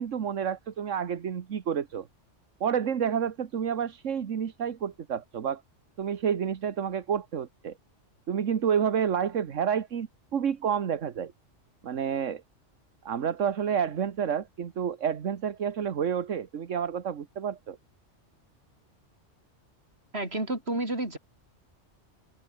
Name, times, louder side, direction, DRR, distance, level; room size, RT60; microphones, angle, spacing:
voice 1, 0.0-2.1 2.6-5.6 6.0-7.7 8.3-11.3 11.8-12.4 13.0-17.8, right 8 dB, 85° right, 1.5 m, -29 dB
voice 2, 20.1-21.2, right 2 dB, 55° right, 5.8 m, -30 dB
omnidirectional pair, 1.3 m